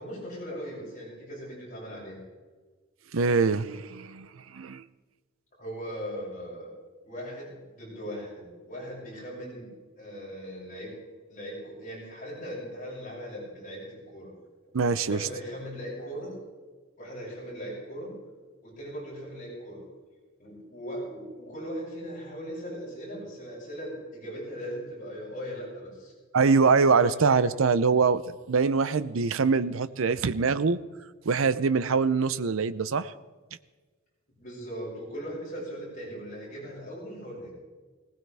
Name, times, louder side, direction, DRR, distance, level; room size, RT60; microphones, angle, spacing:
voice 1, 0.0-2.2 5.6-6.7 7.0-9.7 10.0-10.9 11.3-14.3 15.1-16.4 17.0-18.1 18.6-19.8 20.4-26.1 26.9-27.5 34.4-37.5, equal, 40° left, -5 dB, 6.8 m, -39 dB
voice 2, 3.1-4.8 14.7-15.3 26.3-30.8 31.2-33.1, right 5 dB, 75° right, 15 dB, 0.6 m, -24 dB
19.5 x 18.5 x 3.5 m, 1.4 s
head